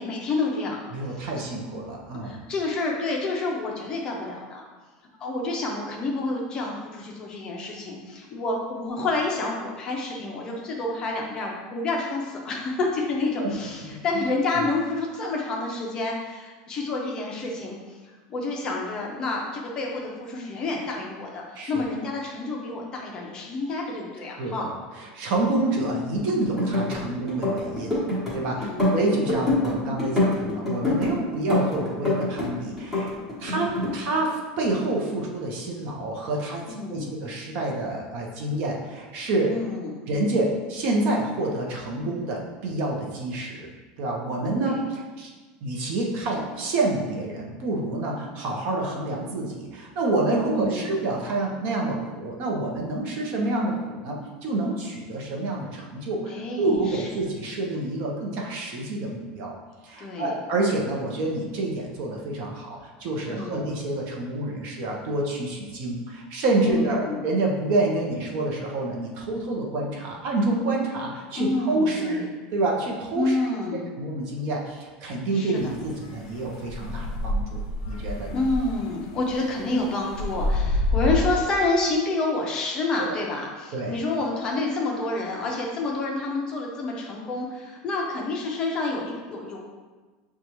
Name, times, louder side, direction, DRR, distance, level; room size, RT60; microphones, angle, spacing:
voice 1, 0.0-0.8 1.2-1.3 2.2-4.7 5.2-24.7 28.4-28.9 29.2-29.5 33.4-33.9 36.7-37.1 39.5-40.1 44.5-44.8 50.5-50.9 56.3-57.1 60.0-60.4 63.2-63.6 66.6-67.2 71.4-72.3 73.1-73.9 75.3-75.7 78.3-89.7, left 2 dB, 25° left, -1 dB, 0.5 m, -29 dB
voice 2, 0.9-2.4 13.4-13.5 13.8-14.2 14.6-14.7 21.5-21.8 24.4-24.7 25.0-28.0 28.3-33.1 33.4-39.5 40.1-43.7 44.0-45.3 45.6-59.6 59.8-72.2 72.5-77.6 77.9-78.4 83.0-83.2 83.7-84.0, right 2 dB, 45° right, -1 dB, 0.7 m, -28 dB
sound 1, 26.4-27.0 27.3-28.3 28.6-29.7 30.0-31.1 31.5-32.5 32.8-33.9, left 2 dB, 5° right, 1.0 m, -24 dB
sound 2, 75.6-81.3, left 2 dB, 75° left, 0.5 m, -29 dB
6.5 x 2.3 x 2.9 m, 1.3 s
supercardioid pair, 175°, 3 cm